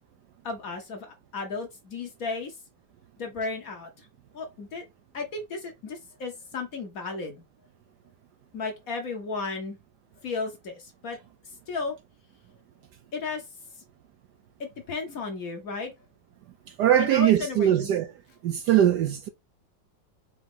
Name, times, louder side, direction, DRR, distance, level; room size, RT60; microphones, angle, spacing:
voice 1, 0.4-2.5 3.2-3.9 4.3-4.8 5.1-7.4 8.5-9.8 10.2-11.2 11.7-11.9 13.1-13.4 14.6-15.9 17.0-17.9, left 4 dB, 55° left, 1.2 m, -34 dB
voice 2, 16.8-18.1 18.4-19.3, right 11 dB, 70° right, 1.0 m, -21 dB
5.0 x 2.8 x 3.6 m
omnidirectional pair, 2.1 m